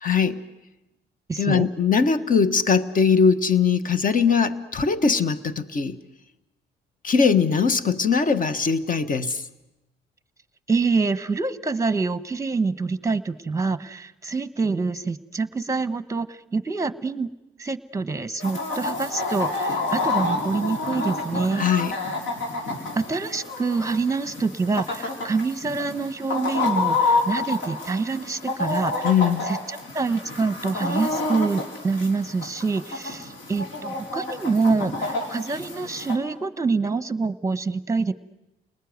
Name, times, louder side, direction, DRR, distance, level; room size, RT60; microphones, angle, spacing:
voice 1, 0.0-0.4 1.4-6.0 7.0-9.4 21.5-21.9 29.0-29.5, left 6 dB, 45° left, 1.4 m, -21 dB
voice 2, 1.3-1.7 10.7-17.3 17.6-21.6 22.9-29.1 29.4-38.1, right 4 dB, 15° right, 1.2 m, -26 dB
Chicken rooster, 18.4-36.2, left 3 dB, 75° left, 5.2 m, -29 dB
30.0 x 20.0 x 9.5 m
cardioid pair, 90°, 20 cm